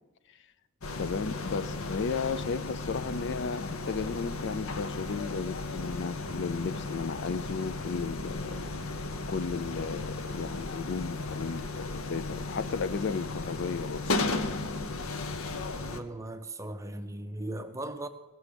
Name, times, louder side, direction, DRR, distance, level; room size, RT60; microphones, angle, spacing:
sound 1, 0.8-16.0, left 3 dB, 70° left, 0.8 m, -35 dB
voice 1, 1.0-8.6 9.3-14.0, left 5 dB, 55° left, 0.4 m, -34 dB
voice 2, 15.9-18.1, right 1 dB, 15° right, 0.5 m, -38 dB
16.5 x 6.2 x 6.7 m
head